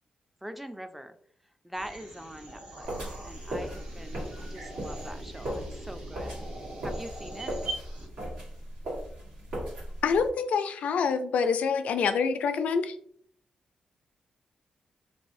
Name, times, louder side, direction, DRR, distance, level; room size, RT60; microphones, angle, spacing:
voice 1, 0.4-1.2 1.6-6.5 6.8-7.6, right 1 dB, 5° right, 8 dB, 0.3 m, -43 dB
sound 1, 1.7-8.1, right 2 dB, 60° right, 1.0 m, -42 dB
sound 2, 2.8-10.3, right 1 dB, 85° right, 1.4 m, -38 dB
voice 2, 10.0-13.0, left 5 dB, 80° left, 9 dB, 0.3 m, -26 dB
3.2 x 2.3 x 2.6 m, 0.62 s
cardioid pair, 90°, 2 cm